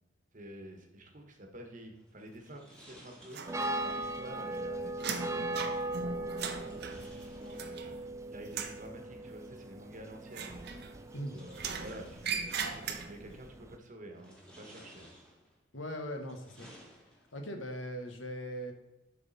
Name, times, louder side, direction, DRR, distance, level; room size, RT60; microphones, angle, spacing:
voice 1, 0.3-10.8 11.3-15.1, right 1 dB, 40° right, 3 dB, 1.3 m, -49 dB
sound 1, 1.9-4.5 6.5-8.1 9.5-9.6 10.6-12.7 13.3-13.7 14.1-15.6 16.1-17.5, equal, 5° left, 1.6 m, -58 dB
sound 2, 3.3-4.1 4.4-8.1 8.4-8.9 10.3-11.2 11.5-13.4, right 5 dB, 60° right, 0.8 m, -39 dB
sound 3, 3.5-13.8, right 2 dB, 15° right, 0.3 m, -40 dB
voice 2, 15.7-16.7 17.3-18.7, equal, 75° left, 5 dB, 1.2 m, -39 dB
7.3 x 5.9 x 4.1 m, 0.95 s
head